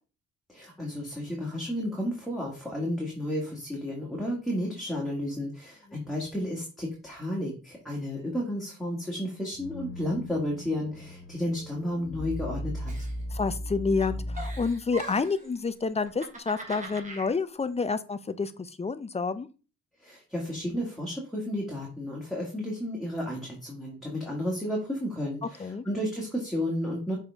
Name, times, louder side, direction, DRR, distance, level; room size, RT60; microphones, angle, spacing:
voice 1, 0.5-12.9 20.0-27.2, left 1 dB, ahead, -4 dB, 2.1 m, -32 dB
sound 1, 9.5-15.0, equal, 40° left, 1.2 m, -37 dB
Giggle, 12.9-13.7 14.0-15.5 16.0-17.3, right 2 dB, 25° right, 2.1 m, -42 dB
voice 2, 13.3-19.5 25.6-25.8, left 4 dB, 20° left, 13 dB, 0.5 m, -29 dB
6.8 x 4.2 x 3.5 m, 0.34 s
cardioid pair, 90°, 30 cm